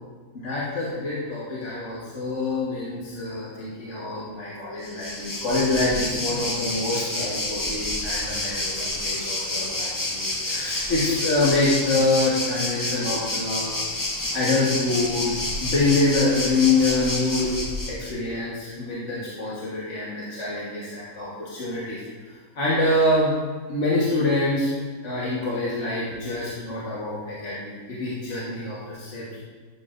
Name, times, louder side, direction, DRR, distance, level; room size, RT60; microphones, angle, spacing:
voice 1, 0.3-13.8 14.3-15.3 15.6-17.5 17.9-23.3 23.7-24.7 25.0-29.4, left 2 dB, 55° left, -8 dB, 1.7 m, -26 dB
Waves surf, 4.8-18.1, left 2 dB, 20° left, 0.5 m, -29 dB
12.0 x 7.4 x 2.6 m, 1.5 s
omnidirectional pair, 1.5 m